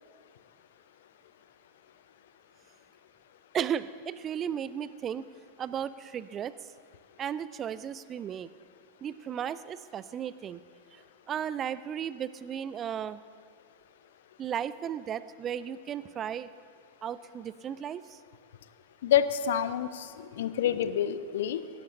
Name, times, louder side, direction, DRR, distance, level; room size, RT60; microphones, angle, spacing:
voice 1, 3.5-5.3 5.6-6.6 7.2-8.5 9.0-10.6 10.9-11.0 11.3-13.2 14.4-16.5 17.0-18.2, right 9 dB, 25° right, 16 dB, 0.4 m, -35 dB
voice 2, 19.0-21.6, left 9 dB, 60° left, 13 dB, 0.5 m, -28 dB
16.5 x 12.0 x 2.7 m, 2.3 s
figure-of-eight pair, 90°, 0 cm